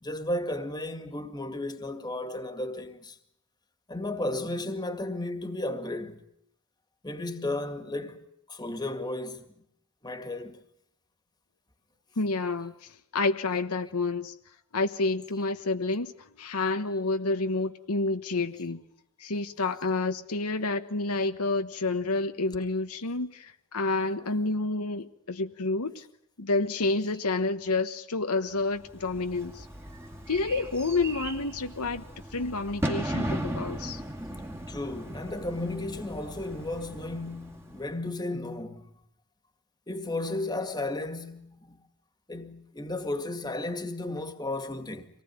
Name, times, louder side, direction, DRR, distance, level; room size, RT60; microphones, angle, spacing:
voice 1, 0.0-3.2 3.9-6.2 7.0-9.5 10.0-10.6 27.0-27.1 34.7-38.9 39.9-41.8 42.3-45.1, left 2 dB, 20° left, 2.1 m, -34 dB
voice 2, 12.2-14.3 14.7-18.8 19.2-26.0 26.4-29.7 30.3-32.0 32.3-34.0, left 3 dB, 75° left, 1.3 m, -29 dB
Bird / Fireworks, 28.8-38.0, right 1 dB, 10° right, 2.1 m, -37 dB
25.5 x 19.0 x 9.7 m
head